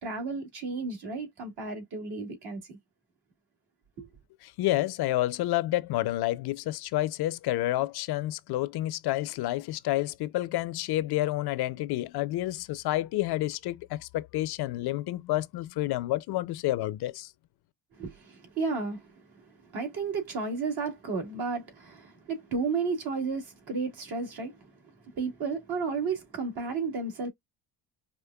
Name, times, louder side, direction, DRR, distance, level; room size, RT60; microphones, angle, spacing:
voice 1, 0.0-2.8 4.0-4.1 18.0-19.1 19.7-24.7 25.1-27.3, right 4 dB, 55° right, 2.1 m, -33 dB
voice 2, 4.4-17.3, left 16 dB, 60° left, 0.6 m, -29 dB
5.1 x 2.4 x 2.2 m
cardioid pair, 120°, 44 cm